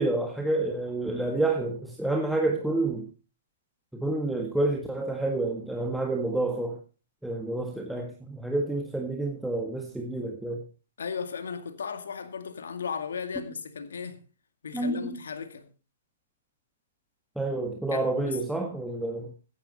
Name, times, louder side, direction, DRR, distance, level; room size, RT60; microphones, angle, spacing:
voice 1, 0.0-3.1 3.9-6.8 7.2-10.6 14.7-15.2 17.3-19.3, right 2 dB, ahead, 1.6 m, -29 dB
voice 2, 11.0-14.2 14.6-15.7 17.9-18.4, left 6 dB, 80° left, 2.2 m, -36 dB
15.0 x 10.5 x 4.1 m
hypercardioid pair, 135°, 0 cm